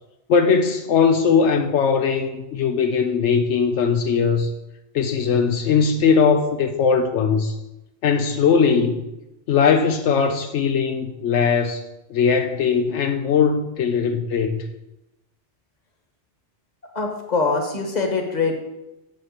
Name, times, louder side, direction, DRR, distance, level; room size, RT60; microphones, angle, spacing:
voice 1, 0.3-4.5 4.9-7.6 8.0-9.0 9.5-11.8 12.1-14.6, left 6 dB, 80° left, 0.9 m, -19 dB
voice 2, 16.9-18.5, left 4 dB, 40° left, 1.4 m, -23 dB
7.2 x 5.8 x 6.5 m
omnidirectional pair, 1.2 m